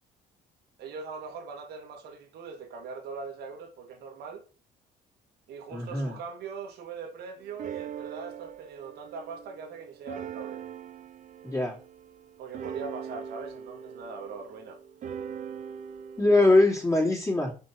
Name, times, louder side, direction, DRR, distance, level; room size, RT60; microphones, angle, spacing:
voice 1, 0.8-4.5 5.5-10.6 12.4-14.8, right 5 dB, 75° right, 2.0 m, -41 dB
voice 2, 5.7-6.2 11.4-11.8 16.2-17.5, left 2 dB, 20° left, 3.2 m, -22 dB
sound 1, 7.4-16.5, right 8 dB, 45° right, 0.8 m, -41 dB
6.0 x 5.6 x 4.2 m
cardioid pair, 110°, 17 cm